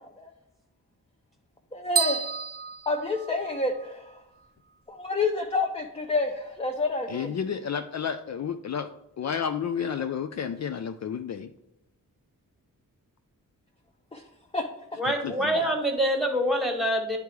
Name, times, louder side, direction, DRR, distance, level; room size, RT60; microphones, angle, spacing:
voice 1, 1.7-2.3 2.9-4.1 4.9-7.3 14.1-14.2 14.5-14.7 15.5-15.6, left 3 dB, 15° left, 2 dB, 0.7 m, -28 dB
sound 1, 2.0-3.9, right 7 dB, 30° right, 0.8 m, -30 dB
voice 2, 7.1-8.9 9.2-11.5 15.0-15.7, left 7 dB, 50° left, 8 dB, 0.4 m, -31 dB
voice 3, 15.0-17.2, equal, ahead, 3 dB, 1.5 m, -25 dB
9.0 x 3.5 x 4.7 m, 0.84 s
cardioid pair, 65°, 34 cm